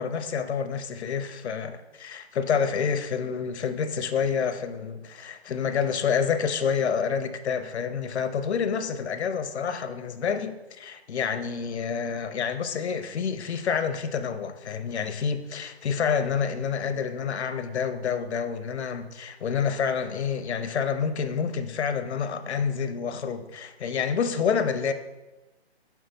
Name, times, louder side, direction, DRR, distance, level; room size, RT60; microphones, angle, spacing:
voice 1, 0.0-24.9, left 6 dB, 80° left, 9 dB, 0.7 m, -28 dB
5.9 x 4.6 x 4.0 m, 1.1 s
hypercardioid pair, 170°, 33 cm